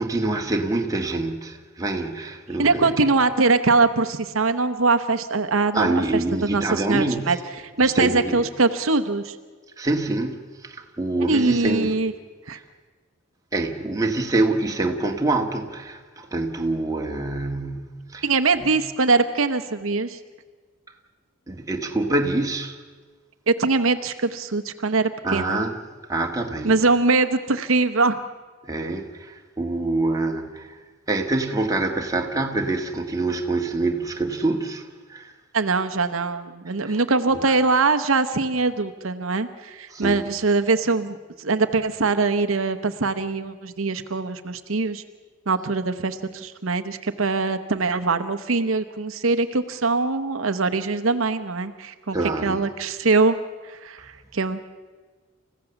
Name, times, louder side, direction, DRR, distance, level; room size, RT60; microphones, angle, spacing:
voice 1, 0.0-3.1 5.7-7.4 7.8-8.4 9.8-12.0 13.5-18.3 18.6-18.8 21.5-22.8 25.2-25.8 26.1-26.8 28.6-30.8 31.1-35.3 36.7-37.0 39.9-40.2 52.1-52.6, right 2 dB, 15° right, 1.7 m, -26 dB
voice 2, 2.6-6.0 6.4-7.4 7.8-9.4 11.3-12.1 12.5-12.6 18.2-20.2 23.5-25.6 26.6-28.2 35.5-45.0 45.5-52.2 52.4-53.4 53.6-54.6, right 3 dB, 75° right, 1.0 m, -22 dB
28.5 x 15.5 x 7.0 m
head